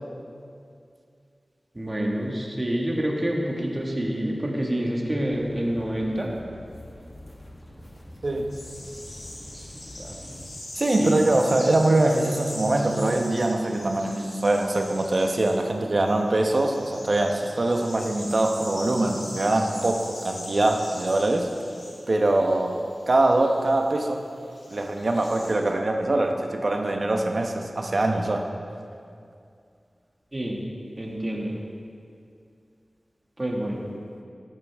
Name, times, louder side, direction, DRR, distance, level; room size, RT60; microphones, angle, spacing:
voice 1, 1.7-6.3 9.5-9.7 10.0-10.4 11.0-11.2 30.3-30.6 31.0-31.6 33.4-33.9, right 1 dB, 30° right, -1 dB, 1.8 m, -28 dB
sound 1, 5.3-10.5, left 1 dB, 30° left, 1.4 m, -45 dB
sound 2, 8.5-25.5, left 1 dB, 80° left, 2.6 m, -41 dB
voice 2, 10.7-21.5 22.1-22.8 23.1-24.2 24.7-28.5, right 2 dB, 60° right, 4 dB, 1.0 m, -23 dB
13.5 x 9.1 x 3.6 m, 2.4 s
cardioid pair, 45°, 0 cm